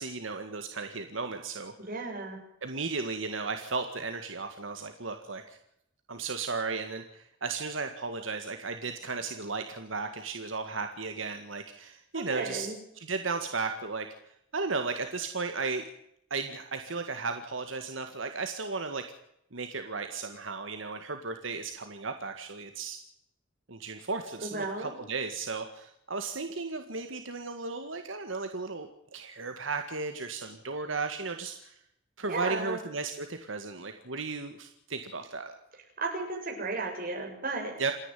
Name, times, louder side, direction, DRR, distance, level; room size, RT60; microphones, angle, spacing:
voice 1, 0.0-1.7 2.6-5.6 6.1-12.7 13.0-14.1 14.5-15.8 16.3-19.0 19.5-23.0 23.7-31.8 32.2-35.5 37.8-37.9, right 4 dB, 85° right, 6 dB, 1.9 m, -35 dB
voice 2, 1.8-2.4 12.1-12.7 24.4-25.0 32.3-32.8 36.0-37.8, right 3 dB, 50° right, 1 dB, 7.2 m, -34 dB
28.0 x 10.5 x 9.3 m, 0.76 s
head